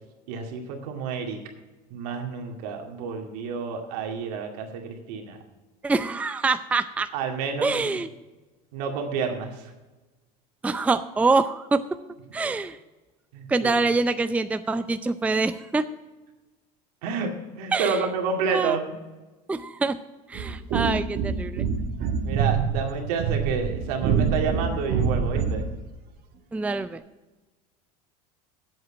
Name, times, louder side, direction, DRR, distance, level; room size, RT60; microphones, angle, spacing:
voice 1, 0.3-1.4 1.9-5.4 7.1-8.0 8.7-9.7 13.3-13.8 17.0-17.3 17.6-18.9 22.2-25.6, right 5 dB, 75° right, 3 dB, 2.2 m, -29 dB
voice 2, 5.8-7.1 7.6-8.1 10.6-11.8 12.3-12.8 13.5-15.8 17.7-18.0 18.5-18.8 19.5-20.0 20.3-21.6 26.5-27.0, right 3 dB, 5° right, 11 dB, 0.4 m, -25 dB
sound 1, 20.3-25.7, right 6 dB, 55° right, 1.5 m, -26 dB
7.9 x 7.9 x 7.7 m, 1.2 s
supercardioid pair, 100°, 20 cm